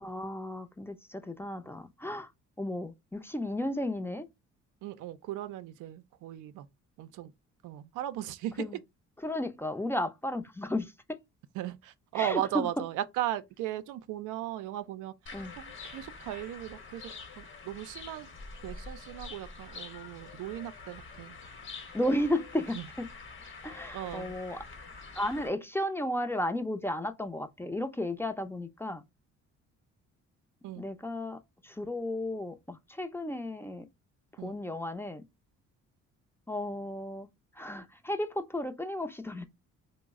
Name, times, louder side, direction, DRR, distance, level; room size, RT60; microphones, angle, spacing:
voice 1, 0.0-2.3 2.6-4.2 8.6-8.8 9.2-10.9 12.2-12.7 15.3-15.5 21.9-23.1 23.6-24.6 25.2-29.0 30.8-33.8 34.4-35.2 36.5-37.3 37.6-39.4, left 1 dB, 10° left, 0.5 m, -34 dB
voice 2, 4.8-6.7 7.0-7.3 7.6-8.7 11.5-15.1 15.6-17.1 17.4-18.3 18.6-21.4 22.7-22.9 23.9-24.4 30.6-30.9 34.4-34.6, right 13 dB, 85° right, 0.5 m, -37 dB
sound 1, 15.3-25.5, left 4 dB, 40° left, 0.9 m, -46 dB
3.0 x 2.1 x 3.5 m
cardioid pair, 90°, 30 cm